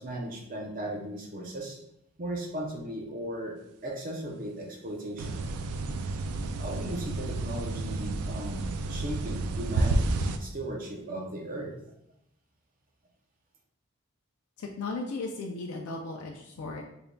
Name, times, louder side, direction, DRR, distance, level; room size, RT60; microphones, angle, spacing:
voice 1, 0.0-1.8 2.2-3.6 3.8-5.4 6.6-11.7, right 1 dB, 40° right, 0 dB, 0.6 m, -37 dB
sound 1, 5.2-10.4, right 2 dB, 85° right, 0.3 m, -30 dB
voice 2, 14.6-16.8, left 3 dB, 85° left, 2 dB, 0.4 m, -36 dB
3.7 x 3.4 x 2.2 m, 0.79 s
head